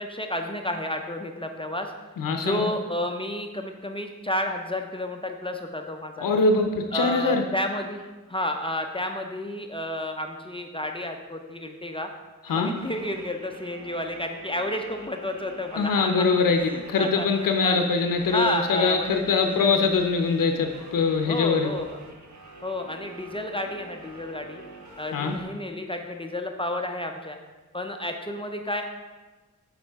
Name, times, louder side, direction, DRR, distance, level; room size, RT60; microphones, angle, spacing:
voice 1, 0.0-1.9 2.4-6.3 6.9-12.1 12.5-16.3 16.5-17.8 18.3-19.7 21.2-22.0 22.6-24.6 25.0-27.4 27.7-28.8, left 1 dB, 15° left, 4 dB, 0.4 m, -31 dB
voice 2, 2.2-2.7 6.2-7.4 12.4-12.7 15.8-21.7 25.1-25.4, left 4 dB, 90° left, 5 dB, 0.6 m, -23 dB
sound 1, 12.7-25.4, right 2 dB, 60° right, 1.0 m, -46 dB
8.0 x 4.2 x 3.4 m, 1.2 s
wide cardioid pair, 80°, 32 cm